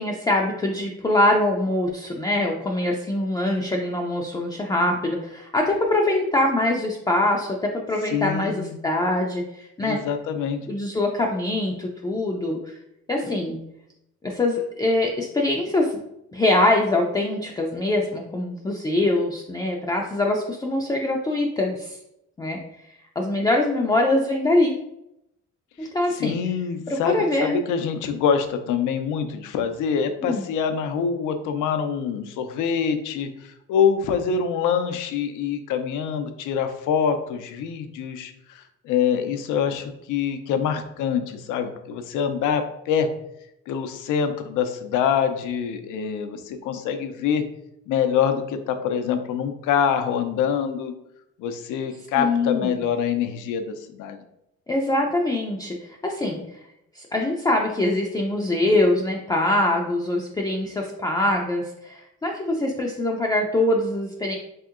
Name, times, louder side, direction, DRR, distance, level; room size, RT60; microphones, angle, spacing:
voice 1, 0.0-10.0 10.7-12.8 13.1-13.6 14.2-16.0 16.3-22.0 22.4-22.6 23.2-24.8 25.8-26.4 26.9-27.6 30.2-30.4 52.1-52.8 54.7-56.4 56.9-64.4, left 1 dB, 15° left, 0 dB, 0.3 m, -23 dB
voice 2, 8.1-8.7 9.8-10.7 25.8-43.1 43.7-47.4 47.9-50.9 51.4-54.2, left 7 dB, 85° left, 8 dB, 0.5 m, -25 dB
3.4 x 2.8 x 2.4 m, 0.81 s
cardioid pair, 90°, 30 cm